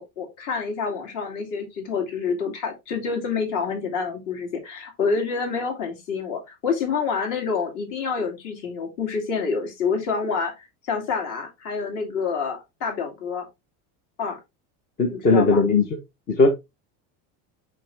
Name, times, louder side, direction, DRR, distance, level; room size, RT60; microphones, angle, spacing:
voice 1, 0.0-13.5 14.2-14.4 15.1-15.6, left 5 dB, 45° left, 2 dB, 2.6 m, -27 dB
voice 2, 15.0-15.9 16.3-16.5, left 3 dB, 20° left, 3 dB, 0.8 m, -18 dB
5.9 x 5.3 x 3.3 m, 0.21 s
cardioid pair, 180°, 44 cm